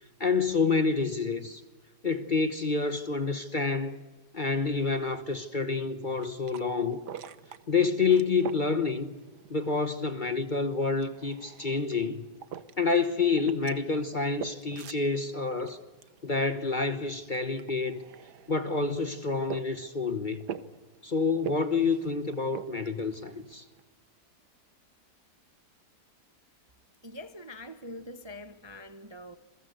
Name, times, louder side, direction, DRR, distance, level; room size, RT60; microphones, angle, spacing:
voice 1, 0.2-1.6 2.0-4.0 4.3-7.0 7.7-9.1 9.5-12.2 12.8-15.8 16.2-18.0 18.5-20.4 21.0-23.6, left 4 dB, 30° left, 1.1 m, -28 dB
sound 1, 6.0-23.8, right 8 dB, 70° right, 1.6 m, -46 dB
voice 2, 27.0-29.4, left 1 dB, 20° right, 0.8 m, -44 dB
27.5 x 22.5 x 8.0 m
omnidirectional pair, 1.9 m